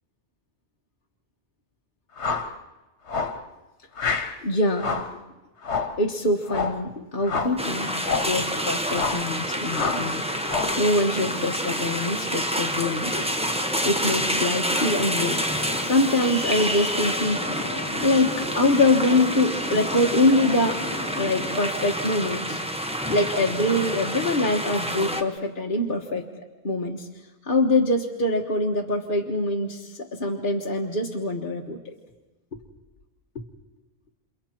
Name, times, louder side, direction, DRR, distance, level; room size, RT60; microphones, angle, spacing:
sound 1, 2.2-2.5 3.1-3.4 4.0-4.3 4.8-5.1 5.6-6.0 6.5-6.8 7.2-7.6 8.0-8.4 8.9-9.3 9.7-10.1 10.4-10.8, left 5 dB, 80° left, 1.6 m, -28 dB
voice 1, 4.4-5.0 6.0-7.9 8.2-13.4 13.8-17.5 18.0-20.8 21.2-22.6 23.1-26.3 26.6-27.1 27.4-31.9 33.3-33.4, left 2 dB, 50° left, 0 dB, 1.6 m, -24 dB
sound 2, 7.4-21.6, left 2 dB, 15° left, 3.3 m, -38 dB
sound 3, 7.6-25.2, equal, 5° right, 1.3 m, -28 dB
29.0 x 28.0 x 4.5 m, 1.1 s
omnidirectional pair, 1.1 m